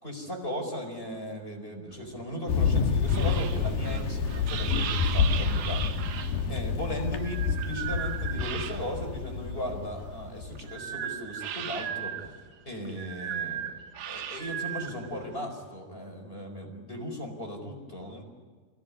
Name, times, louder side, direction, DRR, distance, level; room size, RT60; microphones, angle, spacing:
voice 1, 0.0-5.9 6.5-12.3 12.6-13.7 14.1-18.2, equal, 15° left, 2 dB, 4.5 m, -37 dB
sound 1, 1.9-9.2 9.6-15.4, right 10 dB, 90° right, 3.2 m, -37 dB
Thunder, 2.5-10.7, left 5 dB, 85° left, 3.4 m, -28 dB
26.5 x 17.5 x 9.8 m, 1.5 s
omnidirectional pair, 4.1 m